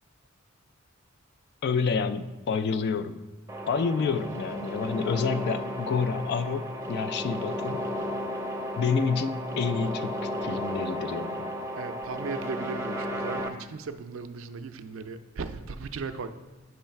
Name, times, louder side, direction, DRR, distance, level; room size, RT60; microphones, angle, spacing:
voice 1, 1.6-3.2 3.7-7.9 8.8-11.5, left 5 dB, 55° left, 12 dB, 0.3 m, -28 dB
sound 1, 3.5-13.5, equal, 15° right, 0.5 m, -34 dB
voice 2, 11.7-16.3, right 4 dB, 70° right, 9 dB, 0.4 m, -37 dB
7.9 x 3.1 x 5.7 m, 1.3 s
head